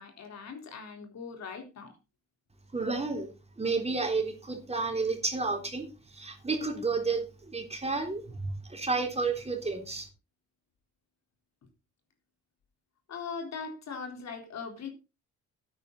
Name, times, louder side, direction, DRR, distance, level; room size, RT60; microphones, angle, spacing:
voice 1, 0.0-1.9 13.1-14.9, left 5 dB, 60° left, 4 dB, 4.0 m, -40 dB
voice 2, 2.7-3.3 3.6-5.9 6.1-10.1, right 3 dB, 20° right, 4 dB, 3.6 m, -31 dB
12.5 x 9.5 x 4.0 m, 0.28 s
cardioid pair, 90°, 30 cm